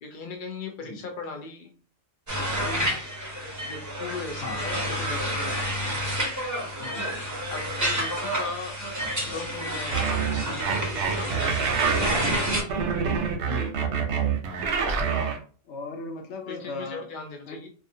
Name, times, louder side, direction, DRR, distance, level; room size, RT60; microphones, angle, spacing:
voice 1, 0.0-1.7 2.6-3.0 3.6-5.7 7.5-8.8 9.3-10.3 10.5-12.4 16.5-17.7, left 4 dB, 90° left, 3 dB, 0.4 m, -38 dB
sound 1, 2.3-12.6, equal, 30° right, 0.3 m, -30 dB
voice 2, 4.4-4.9 6.8-7.1 13.4-14.1 15.7-17.1 17.5-17.6, left 3 dB, 60° left, 3 dB, 0.9 m, -37 dB
sound 2, 9.9-15.4, right 6 dB, 65° right, 0.7 m, -26 dB
2.4 x 2.4 x 2.6 m, 0.41 s
omnidirectional pair, 1.4 m